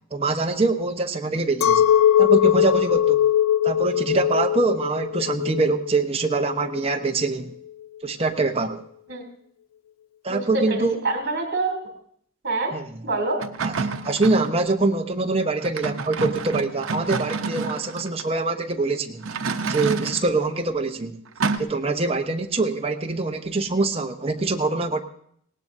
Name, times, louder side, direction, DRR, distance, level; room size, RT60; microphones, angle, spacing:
voice 1, 0.1-1.8 2.2-3.2 3.6-7.5 8.0-8.8 10.2-10.9 12.7-12.9 13.6-13.7 14.0-19.2 19.7-21.1 21.6-25.0, right 3 dB, 30° right, 4 dB, 0.9 m, -24 dB
Chink clink, 1.6-7.1, left 10 dB, 85° left, 0.4 m, -20 dB
voice 2, 10.3-11.9 12.4-12.7 13.0-13.4, right 2 dB, 55° right, 2 dB, 2.9 m, -26 dB
sound 1, 13.4-14.6 15.6-18.2 19.2-20.3 21.4-21.6, right 4 dB, 85° right, 0.8 m, -28 dB
19.5 x 17.5 x 2.6 m, 0.66 s
head